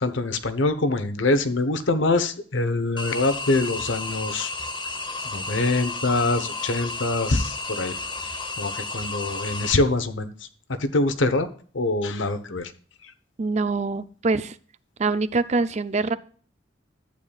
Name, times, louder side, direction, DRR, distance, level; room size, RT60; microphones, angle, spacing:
voice 1, 0.0-4.5 5.2-8.0 8.6-10.3 10.7-11.5 11.7-12.7, left 2 dB, 80° left, 10 dB, 1.0 m, -24 dB
sound 1, 3.0-9.7, left 3 dB, 25° left, 1.0 m, -32 dB
voice 2, 13.4-14.6 15.0-16.2, right 3 dB, 35° right, 13 dB, 0.5 m, -24 dB
11.5 x 8.6 x 2.4 m, 0.44 s
head